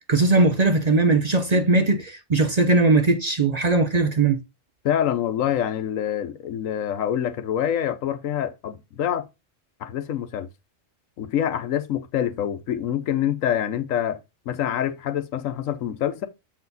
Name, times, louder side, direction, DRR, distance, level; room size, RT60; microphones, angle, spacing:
voice 1, 0.1-4.4, right 3 dB, 40° right, 0.6 m, -19 dB
voice 2, 4.8-9.3 9.8-10.5 11.2-14.2 14.5-16.3, left 10 dB, 90° left, 1.2 m, -26 dB
7.3 x 4.4 x 4.0 m
omnidirectional pair, 1.3 m